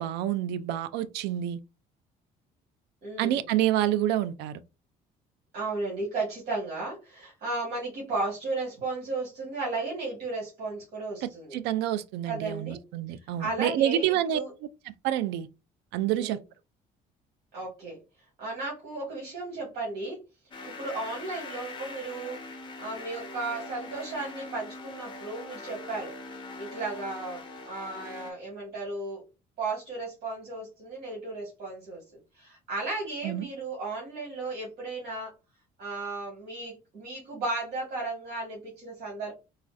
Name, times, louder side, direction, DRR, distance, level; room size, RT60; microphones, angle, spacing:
voice 1, 0.0-1.6 3.2-4.6 11.2-14.4 15.0-15.5 15.9-16.4 33.2-33.5, right 12 dB, 90° right, 0.4 m, -28 dB
voice 2, 3.0-3.4 5.5-11.6 12.3-12.8 13.1-14.5 16.2-16.4 17.5-18.0 18.4-20.2 20.6-29.2 29.6-32.0 32.3-35.3 35.8-39.3, right 3 dB, 65° right, 1.9 m, -35 dB
sound 1, 20.5-28.3, left 2 dB, 30° left, 1.0 m, -42 dB
4.1 x 2.4 x 2.5 m
cardioid pair, 110°, 17 cm